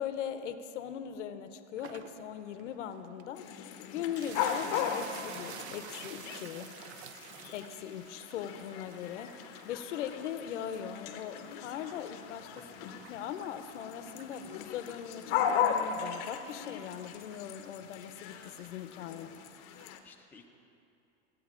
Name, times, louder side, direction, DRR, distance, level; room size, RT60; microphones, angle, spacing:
voice 1, 0.0-3.5 3.9-6.7 7.5-12.6 13.1-19.3, left 9 dB, 85° left, 10 dB, 0.6 m, -40 dB
sound 1, 1.8-20.0, right 8 dB, 70° right, 0.6 m, -52 dB
sound 2, 3.3-20.0, left 8 dB, 45° left, 0.6 m, -37 dB
voice 2, 12.6-13.0 19.8-20.6, left 4 dB, 5° left, 1 dB, 0.3 m, -57 dB
13.5 x 8.2 x 2.4 m, 2.7 s
supercardioid pair, 125°, 35 cm